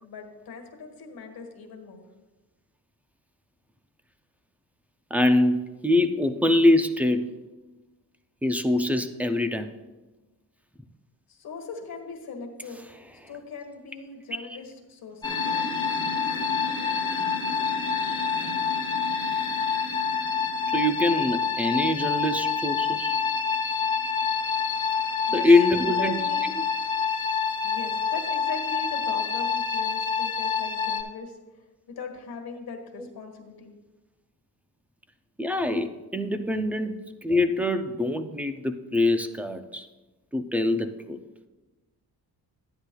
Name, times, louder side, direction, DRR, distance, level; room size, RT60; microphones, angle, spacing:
voice 1, 0.0-2.0 11.3-12.9 13.3-15.4 25.3-25.5 25.8-26.5 27.6-31.4 31.9-33.8, left 4 dB, 65° left, 2 dB, 1.5 m, -40 dB
voice 2, 5.1-7.3 8.4-9.7 14.5-14.6 20.7-23.1 25.3-26.2 35.4-39.9 40.3-41.2, left 2 dB, 5° right, 7 dB, 0.3 m, -24 dB
sound 1, 15.2-31.0, left 6 dB, 10° left, 1.0 m, -27 dB
13.0 x 9.6 x 2.2 m, 1.2 s
wide cardioid pair, 170°, 39 cm